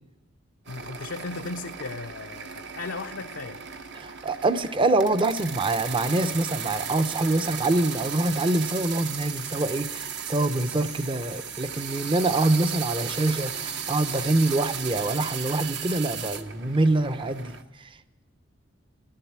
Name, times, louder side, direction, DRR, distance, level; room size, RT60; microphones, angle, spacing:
voice 1, 0.7-3.6, left 3 dB, 80° left, 0.6 m, -36 dB
sound 1, 0.7-17.6, right 7 dB, 65° right, 1.0 m, -35 dB
voice 2, 3.9-17.6, right 2 dB, 25° right, 0.6 m, -25 dB
14.0 x 11.5 x 8.7 m
head